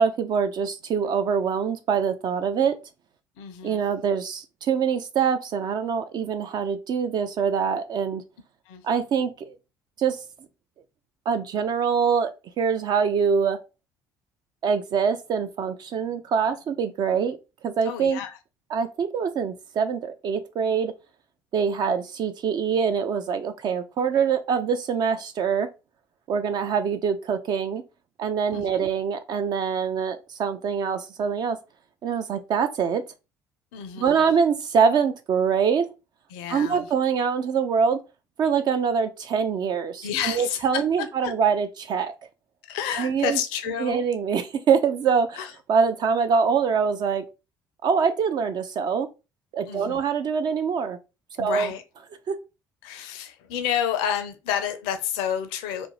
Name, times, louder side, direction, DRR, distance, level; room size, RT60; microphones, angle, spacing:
voice 1, 0.0-2.8 3.6-8.2 8.8-9.6 10.0-10.2 11.3-13.6 14.6-17.4 17.6-18.2 18.7-20.9 21.5-25.7 26.3-27.8 28.2-31.6 32.0-33.0 34.0-35.9 36.5-38.0 38.4-42.1 43.0-43.4 43.8-45.4 45.7-47.2 47.8-49.1 49.5-51.0 51.4-51.7 52.3-52.4, right 6 dB, 45° right, 0.3 m, -24 dB
voice 2, 3.4-3.8 8.7-8.8 17.9-18.4 28.5-28.8 33.7-34.3 36.3-36.9 40.0-41.3 42.6-44.0 45.4-45.5 49.7-50.0 51.4-51.8 52.8-55.9, left 9 dB, 70° left, 0.4 m, -30 dB
2.4 x 2.0 x 3.0 m
hypercardioid pair, 60°, 10 cm